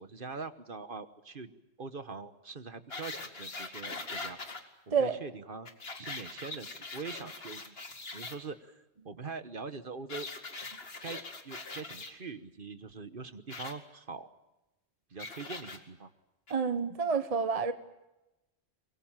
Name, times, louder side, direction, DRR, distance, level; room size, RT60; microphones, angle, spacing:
voice 1, 0.0-1.5 1.8-4.4 4.9-5.7 6.0-7.7 8.1-10.3 11.0-11.2 11.4-14.3 15.1-16.1, right 4 dB, 50° right, 1.4 m, -43 dB
sound 1, 2.9-4.6 5.7-8.4 10.1-12.1 13.5-13.7 15.2-15.8 16.5-16.6, left 3 dB, 60° left, 2.4 m, -42 dB
voice 2, 16.5-17.7, right 5 dB, 35° right, 1.1 m, -28 dB
24.0 x 23.0 x 8.9 m
omnidirectional pair, 1.1 m